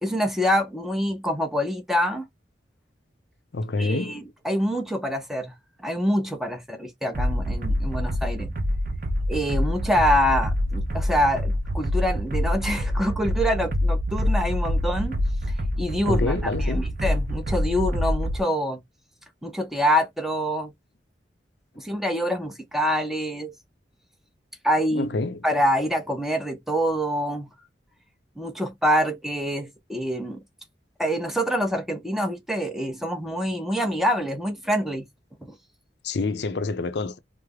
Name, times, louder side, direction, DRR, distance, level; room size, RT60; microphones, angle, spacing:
voice 1, 0.0-2.3 3.8-5.5 5.8-8.5 9.3-15.2 15.8-18.8 19.4-20.7 21.8-23.5 24.6-25.1 25.4-27.5 28.4-30.4 31.0-35.1 35.4-35.6, equal, ahead, 0.7 m, -25 dB
voice 2, 3.5-4.3 16.1-16.8 24.9-25.5 36.0-37.2, left 3 dB, 65° left, 0.5 m, -27 dB
sound 1, 7.1-18.4, left 1 dB, 50° right, 0.8 m, -26 dB
3.1 x 2.0 x 3.6 m
head